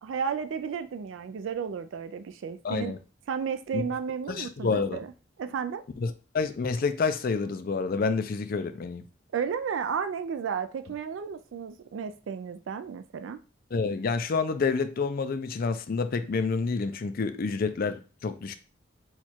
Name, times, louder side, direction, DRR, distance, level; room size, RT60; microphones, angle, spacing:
voice 1, 0.0-2.9 3.3-5.1 5.4-5.8 9.3-13.4, right 6 dB, 75° right, 0.3 m, -33 dB
voice 2, 2.6-3.0 3.7-3.8 4.3-5.0 6.0-9.0 13.7-18.5, left 4 dB, 50° left, 0.4 m, -28 dB
4.4 x 2.3 x 4.3 m
head